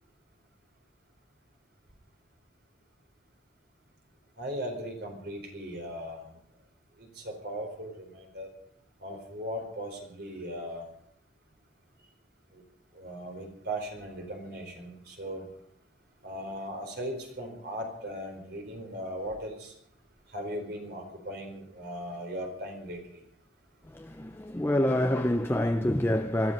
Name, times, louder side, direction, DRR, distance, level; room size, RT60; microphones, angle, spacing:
voice 1, 4.4-6.3 7.0-8.5 9.0-10.9 12.5-12.6 12.9-15.4 16.2-19.7 20.3-23.2, equal, 55° right, 4.5 m, -38 dB
voice 2, 23.9-26.5, left 1 dB, 10° left, 0.5 m, -27 dB
20.0 x 13.0 x 5.5 m
head